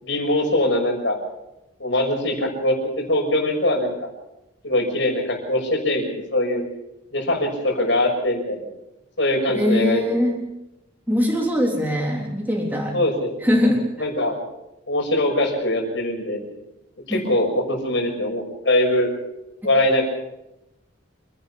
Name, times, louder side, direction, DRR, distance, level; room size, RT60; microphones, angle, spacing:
voice 1, 0.0-1.2 1.8-2.8 3.1-4.1 4.6-6.6 7.1-8.6 9.2-10.0 12.9-13.3 14.0-14.4 14.9-16.4 17.1-19.1 19.6-20.0, left 1 dB, 65° left, 2 dB, 6.3 m, -22 dB
voice 2, 9.5-10.4 11.1-13.0 13.4-14.1 17.1-17.2, equal, 10° right, -1 dB, 3.4 m, -21 dB
28.5 x 11.5 x 8.5 m, 0.91 s
head